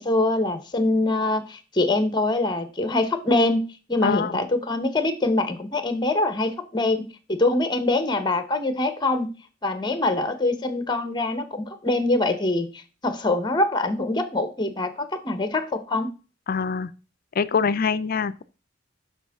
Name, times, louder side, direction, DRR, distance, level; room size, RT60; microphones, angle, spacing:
voice 1, 0.0-3.6 3.9-9.3 9.6-16.1, left 2 dB, 25° left, 1.0 m, -24 dB
voice 2, 4.0-4.3 16.5-16.9 17.4-18.4, left 5 dB, 50° left, 0.4 m, -24 dB
8.2 x 6.1 x 3.6 m
head